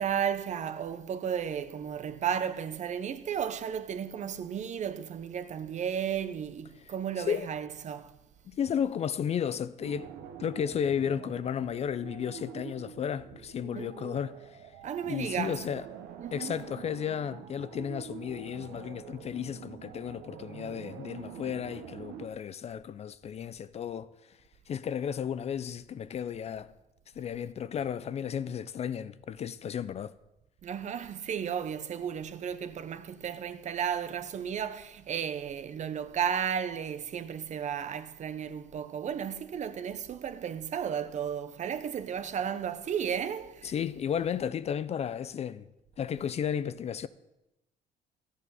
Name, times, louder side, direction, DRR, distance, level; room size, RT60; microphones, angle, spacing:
voice 1, 0.0-8.2 13.7-13.9 14.8-15.6 16.2-16.5 30.6-43.7, right 8 dB, 45° right, 0.7 m, -34 dB
voice 2, 7.2-7.5 8.5-10.1 10.4-14.5 15.0-15.8 16.3-24.1 24.7-26.7 27.2-30.1 43.6-45.7 46.0-47.1, left 8 dB, 40° left, 0.4 m, -33 dB
sound 1, 9.8-22.3, right 9 dB, 85° right, 1.2 m, -46 dB
13.0 x 8.2 x 5.6 m
cardioid pair, 110°, 17 cm